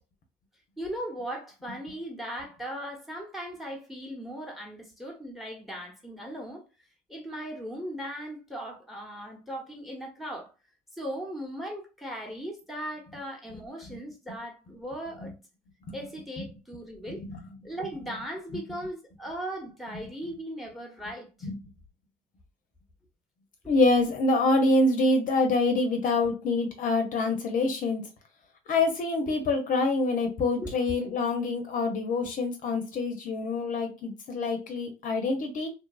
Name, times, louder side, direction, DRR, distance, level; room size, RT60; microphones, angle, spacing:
voice 1, 0.8-6.6 7.1-10.5 11.0-15.3 15.9-17.2 17.6-21.5 23.6-23.7 30.6-30.7, equal, ahead, 1.0 m, -38 dB
voice 2, 23.7-28.0 28.7-35.7, left 2 dB, 50° left, 0.6 m, -26 dB
2.7 x 2.3 x 2.3 m
cardioid pair, 100°, 18 cm